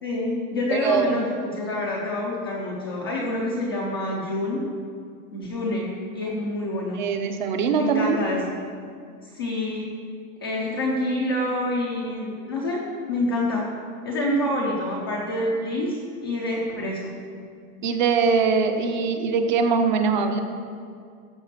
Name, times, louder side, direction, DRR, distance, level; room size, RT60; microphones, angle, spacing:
voice 1, 0.0-4.6 5.3-5.8 6.1-7.0 7.8-8.4 9.3-9.9 10.4-12.8 13.1-13.6 14.0-17.1, left 1 dB, 15° left, -4 dB, 0.4 m, -27 dB
voice 2, 0.7-1.2 6.9-8.2 17.8-20.4, right 5 dB, 30° right, 5 dB, 0.7 m, -22 dB
13.5 x 4.9 x 7.3 m, 2.3 s
supercardioid pair, 180°, 45 cm